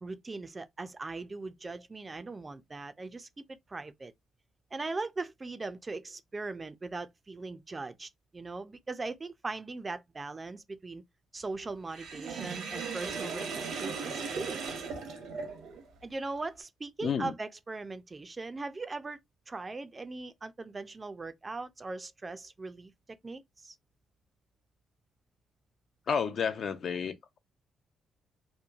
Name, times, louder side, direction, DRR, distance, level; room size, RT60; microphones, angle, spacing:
voice 1, 0.0-4.1 4.7-11.0 11.3-14.6 16.0-19.2 19.5-22.9 23.2-23.7, right 3 dB, 25° right, 0.3 m, -40 dB
Sink (filling or washing), 11.9-15.9, right 5 dB, 90° right, 0.9 m, -37 dB
voice 2, 17.0-17.3 26.1-27.4, left 6 dB, 55° left, 0.4 m, -31 dB
2.9 x 2.1 x 2.3 m
cardioid pair, 90°, 0 cm